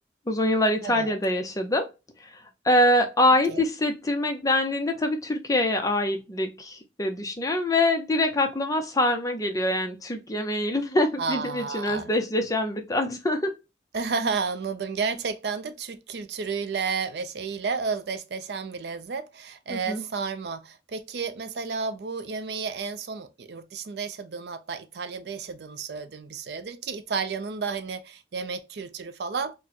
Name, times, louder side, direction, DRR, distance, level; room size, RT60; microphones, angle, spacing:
voice 1, 0.3-1.9 2.6-13.5 19.7-20.0, left 1 dB, 20° left, 0.6 m, -24 dB
voice 2, 0.8-1.1 3.5-3.6 11.2-12.1 13.9-29.6, right 5 dB, 65° right, 0.4 m, -32 dB
4.2 x 2.1 x 2.8 m
head